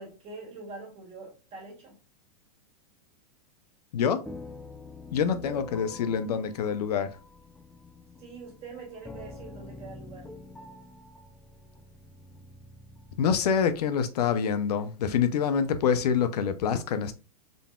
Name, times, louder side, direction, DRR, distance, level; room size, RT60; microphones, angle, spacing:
voice 1, 0.0-2.0 8.2-10.3, right 3 dB, 30° right, 2.1 m, -44 dB
voice 2, 3.9-4.2 5.1-7.1 13.2-17.1, left 7 dB, 80° left, 0.6 m, -26 dB
sound 1, 4.3-13.9, left 2 dB, 5° left, 0.3 m, -47 dB
3.8 x 3.5 x 2.2 m
hypercardioid pair, 135°, 20 cm